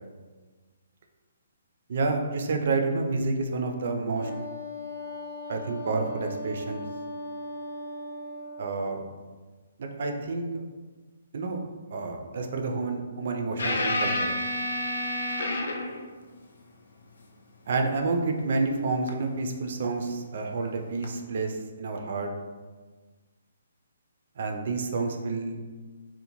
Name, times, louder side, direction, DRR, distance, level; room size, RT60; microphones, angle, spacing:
voice 1, 1.9-4.3 5.5-6.8 8.6-9.1 9.8-10.5 11.3-11.6 11.9-14.3 17.7-22.3 24.4-25.6, right 3 dB, 45° right, 3 dB, 0.3 m, -29 dB
Wind instrument woodwind instrument, 4.1-8.8, left 1 dB, 50° left, 0.8 m, -38 dB
sound 1, 13.6-16.1 19.1-19.2 21.0-21.2, left 1 dB, 70° left, 0.3 m, -29 dB
2.6 x 2.1 x 2.9 m, 1.4 s
hypercardioid pair, 175°, 0 cm